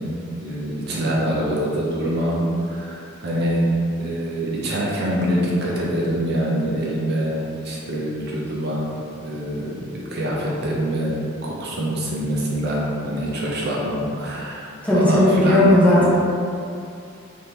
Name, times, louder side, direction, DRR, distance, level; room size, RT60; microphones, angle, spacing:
voice 1, 0.0-16.1, right 1 dB, 50° right, -4 dB, 0.6 m, -25 dB
voice 2, 14.8-16.1, left 1 dB, 5° left, -9 dB, 0.7 m, -16 dB
3.4 x 2.6 x 4.3 m, 2.5 s
head